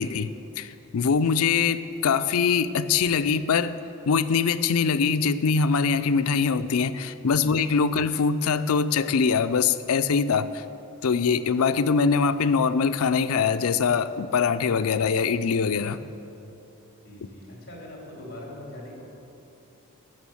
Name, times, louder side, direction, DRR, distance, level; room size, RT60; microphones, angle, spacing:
voice 1, 0.0-3.8 4.1-10.6 11.0-16.0, left 5 dB, 85° left, 12 dB, 0.5 m, -23 dB
voice 2, 17.0-19.0, left 1 dB, 45° left, -3 dB, 3.0 m, -41 dB
13.0 x 6.1 x 7.2 m, 2.9 s
head